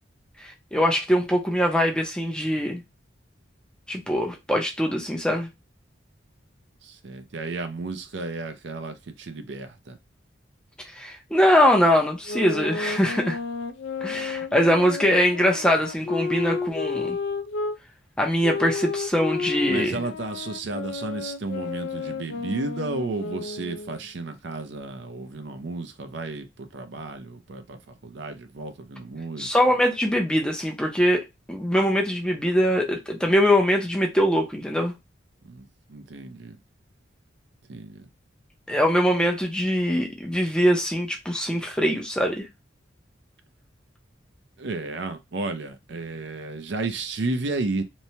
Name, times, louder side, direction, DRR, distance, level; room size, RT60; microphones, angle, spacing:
voice 1, 0.4-2.8 3.9-5.5 10.9-13.4 14.0-17.2 18.2-20.0 29.4-34.9 38.7-42.5, equal, 5° left, 0.5 m, -22 dB
voice 2, 6.8-10.0 19.7-29.6 35.4-36.6 37.7-38.1 44.6-47.8, right 3 dB, 65° right, 0.5 m, -33 dB
sound 1, 12.2-17.8 18.4-24.0, left 4 dB, 75° left, 0.3 m, -32 dB
3.0 x 2.1 x 2.7 m
head